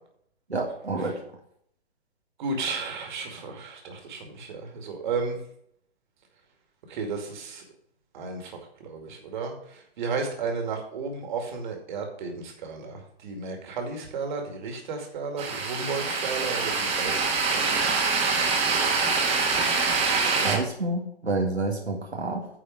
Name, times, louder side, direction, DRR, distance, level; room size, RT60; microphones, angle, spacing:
voice 1, 0.5-1.2 20.4-22.5, right 2 dB, 85° right, 0 dB, 1.8 m, -28 dB
voice 2, 2.4-5.4 6.9-7.6 8.1-17.8 20.4-20.6, right 4 dB, 50° right, 3 dB, 2.3 m, -33 dB
sound 1, 15.4-20.6, right 4 dB, 20° right, 1.7 m, -25 dB
9.8 x 4.8 x 6.3 m, 0.69 s
figure-of-eight pair, 120°, 32 cm